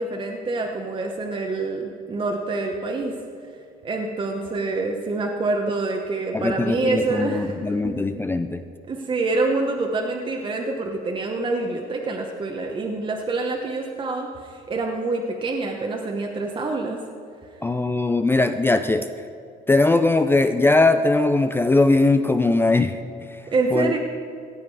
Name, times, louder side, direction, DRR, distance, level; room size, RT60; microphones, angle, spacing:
voice 1, 0.0-3.2 3.8-8.0 8.9-17.0 23.5-24.0, right 3 dB, 30° right, 1 dB, 1.1 m, -26 dB
voice 2, 6.3-8.6 17.6-19.1 19.7-23.0 23.7-23.9, left 2 dB, 15° left, 9 dB, 0.4 m, -20 dB
17.0 x 7.5 x 4.8 m, 2.3 s
cardioid pair, 110°, 17 cm